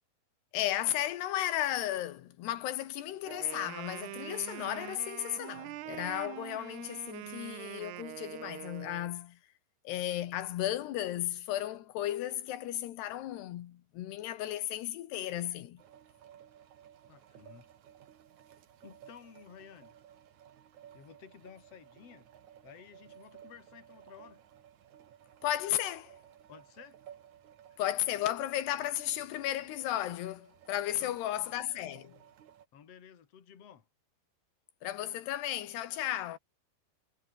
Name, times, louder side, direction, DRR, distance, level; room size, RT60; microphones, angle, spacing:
voice 1, 0.5-9.4 9.9-15.8 25.4-26.2 27.8-32.2 34.8-36.4, left 13 dB, 85° left, 3.5 m, -34 dB
Wind instrument woodwind instrument, 3.2-9.1, right 16 dB, 80° right, 3.1 m, -44 dB
sound 1, 15.8-32.7, right 10 dB, 55° right, 2.7 m, -57 dB
voice 2, 17.1-17.7 18.8-20.0 20.9-22.3 22.6-24.4 26.5-27.0 31.0-31.5 32.7-33.9, left 8 dB, 40° left, 3.3 m, -54 dB
omnidirectional pair, 4.7 m